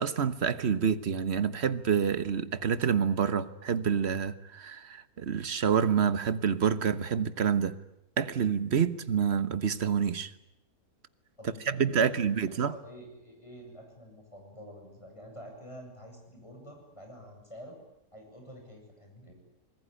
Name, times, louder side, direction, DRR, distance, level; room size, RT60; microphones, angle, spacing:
voice 1, 0.0-7.8 8.2-10.3 11.7-12.7, right 7 dB, 45° right, 14 dB, 1.4 m, -27 dB
voice 2, 11.4-17.8 18.1-19.3, equal, 20° left, 2 dB, 7.6 m, -48 dB
27.0 x 20.5 x 10.0 m, 0.85 s
omnidirectional pair, 1.7 m